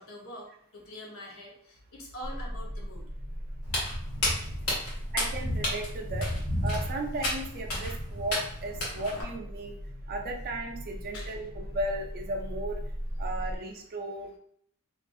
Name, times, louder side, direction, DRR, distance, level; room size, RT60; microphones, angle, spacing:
voice 1, 0.0-3.1 4.8-5.0 11.1-11.5, left 1 dB, 65° left, -2 dB, 0.7 m, -45 dB
sound 1, 2.2-13.6, equal, 35° left, 0.5 m, -39 dB
Walk footsteps, 3.6-9.2, left 1 dB, 90° left, 1.1 m, -32 dB
voice 2, 5.1-6.3 6.6-9.7 10.1-12.8 13.2-14.4, right 1 dB, 45° right, 3 dB, 0.4 m, -35 dB
2.4 x 2.3 x 2.5 m, 0.65 s
head